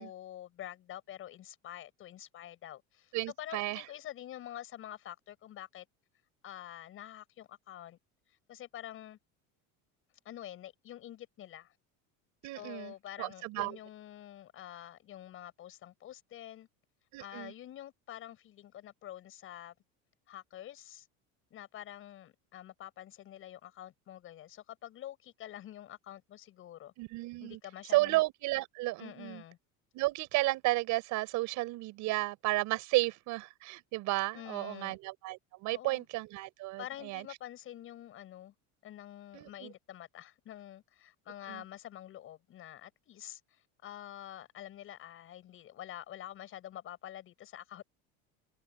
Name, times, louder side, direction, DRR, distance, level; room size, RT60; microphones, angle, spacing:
voice 1, 0.0-5.9 6.4-8.0 8.5-9.2 10.2-11.7 12.5-16.7 17.2-19.7 20.3-21.1 21.5-26.9 27.4-28.2 29.0-29.6 34.3-35.0 35.7-36.1 36.8-38.5 38.8-47.8, left 12 dB, 35° left, 7.3 m, -47 dB
voice 2, 3.1-3.8 12.4-13.8 17.1-17.5 27.0-27.6 27.9-29.4 29.9-37.2 39.3-39.7 41.5-41.6, right 20 dB, 50° right, 6.8 m, -33 dB
cardioid pair, 170°, 36 cm